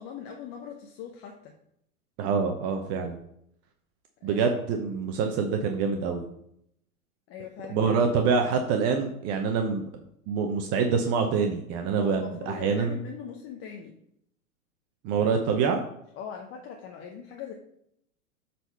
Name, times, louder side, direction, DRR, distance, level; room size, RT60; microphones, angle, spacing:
voice 1, 0.0-1.5 4.2-4.5 7.3-7.9 12.0-14.0 16.1-17.5, left 7 dB, 30° left, 2 dB, 1.0 m, -41 dB
voice 2, 2.2-3.2 4.2-6.3 7.7-9.8 10.3-13.0 15.0-15.8, right 5 dB, 35° right, 4 dB, 0.9 m, -26 dB
7.9 x 4.3 x 5.6 m, 0.75 s
hypercardioid pair, 115°, 44 cm